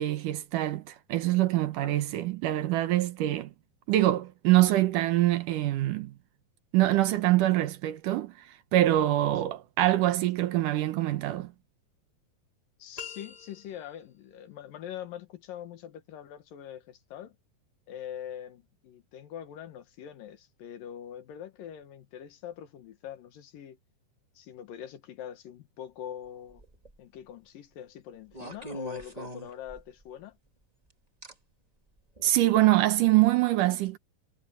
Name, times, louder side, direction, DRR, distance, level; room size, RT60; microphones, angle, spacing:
voice 1, 0.0-3.5 3.9-6.1 6.7-8.3 8.7-11.5 32.2-34.0, right 15 dB, 70° right, 2.4 m, -24 dB
voice 2, 12.8-17.4 17.9-23.8 24.3-26.6 27.0-30.4, left 10 dB, 80° left, 3.2 m, -43 dB
sound 1, 13.0-14.1, left 6 dB, 20° left, 1.1 m, -44 dB
sound 2, 26.5-27.0 28.3-30.1 31.2-31.3 32.2-32.3, right 1 dB, 15° right, 1.4 m, -42 dB
omnidirectional pair, 4.0 m